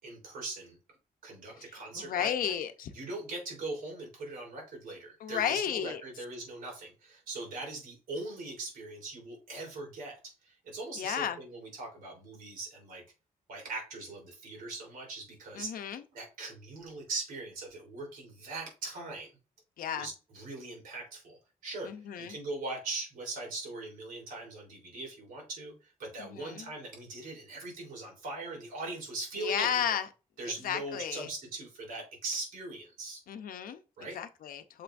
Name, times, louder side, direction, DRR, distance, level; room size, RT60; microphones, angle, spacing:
voice 1, 0.0-0.8 1.2-2.6 2.9-13.0 13.5-15.8 16.1-19.3 19.9-21.9 22.2-29.8 30.4-33.2 34.0-34.2, right 2 dB, 90° right, 3.7 m, -40 dB
voice 2, 1.6-2.9 5.2-6.0 11.0-11.4 15.5-16.0 19.8-20.1 21.8-22.4 26.2-26.7 29.4-30.1 30.4-31.3 33.3-33.8 34.1-34.8, left 9 dB, 85° left, 0.7 m, -33 dB
6.7 x 5.7 x 2.6 m
cardioid pair, 115°, 14 cm